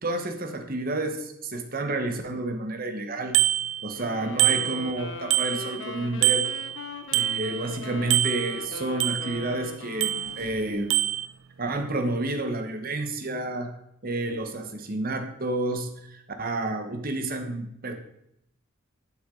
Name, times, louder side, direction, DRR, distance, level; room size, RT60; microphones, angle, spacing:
voice 1, 0.0-3.4 3.8-6.5 7.1-10.9 11.6-13.7 14.0-17.9, right 2 dB, 45° right, 6 dB, 1.0 m, -30 dB
Bicycle bell, 3.3-4.1 4.4-5.9 6.2-7.8 8.1-9.5 10.0-10.6 10.9-11.3, right 15 dB, 75° right, 0.4 m, -25 dB
sound 1, 4.0-10.8, left 4 dB, 60° left, 0.7 m, -40 dB
11.0 x 6.0 x 3.8 m, 0.78 s
head